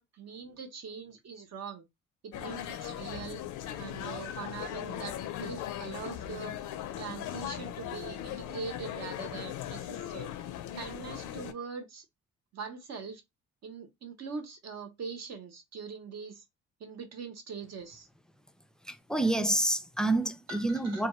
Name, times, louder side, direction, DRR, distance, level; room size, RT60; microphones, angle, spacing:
voice 1, 0.0-1.9 2.2-3.4 3.8-6.6 7.0-10.3 10.7-12.1 12.5-13.2 13.6-16.4 16.8-18.1 20.5-21.1, right 5 dB, 60° right, 0.9 m, -42 dB
sound 1, 2.3-11.5, left 11 dB, 80° left, 0.5 m, -39 dB
voice 2, 18.9-21.1, right 1 dB, ahead, 0.3 m, -28 dB
2.3 x 2.2 x 2.9 m
cardioid pair, 90°, 30 cm